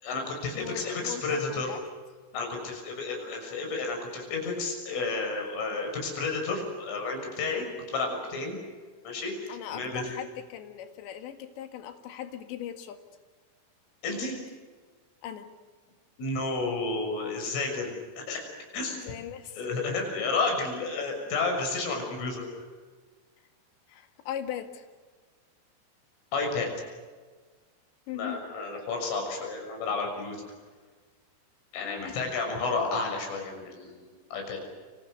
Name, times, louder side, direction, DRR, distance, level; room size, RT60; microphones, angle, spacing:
voice 1, 0.0-1.7 2.3-8.6 9.1-10.0 14.0-14.4 16.2-18.5 18.7-19.0 19.6-22.4 26.3-26.7 28.1-30.4 31.7-34.6, left 3 dB, 85° left, 3 dB, 9.0 m, -31 dB
voice 2, 0.6-1.8 9.5-13.0 15.2-15.5 19.0-19.9 23.9-24.9 28.1-28.4 31.8-32.2 33.7-33.8, left 10 dB, 70° left, 7 dB, 4.1 m, -39 dB
29.5 x 27.0 x 6.8 m, 1.5 s
omnidirectional pair, 5.5 m